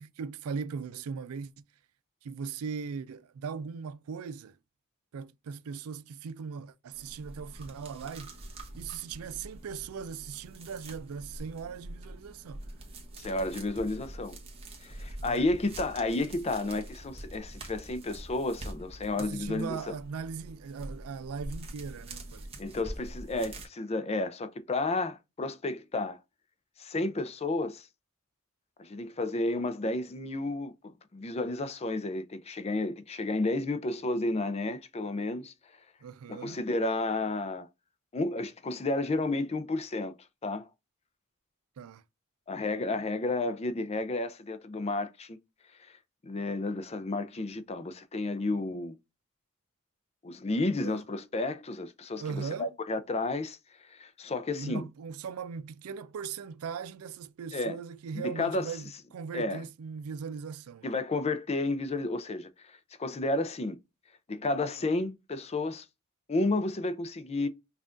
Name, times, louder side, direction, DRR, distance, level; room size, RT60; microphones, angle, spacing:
voice 1, 0.0-1.6 2.2-4.6 5.1-8.4 8.8-12.6 15.2-15.5 19.2-22.5 36.0-36.6 41.8-42.0 50.8-51.0 52.2-52.8 54.5-60.9, right 6 dB, 90° right, 0.4 m, -39 dB
sound 1, 6.9-23.7, right 1 dB, 25° right, 0.9 m, -45 dB
voice 2, 13.2-14.4 14.8-20.0 22.6-26.2 26.8-27.9 28.8-35.5 36.3-37.7 38.1-40.1 40.4-40.7 42.5-45.4 45.8-46.0 46.2-49.0 50.2-53.6 53.9-54.9 57.5-57.8 58.1-58.7 59.3-59.6 60.8-63.8 64.3-65.8 66.3-67.5, left 2 dB, 30° left, 0.4 m, -32 dB
5.6 x 2.4 x 2.5 m
head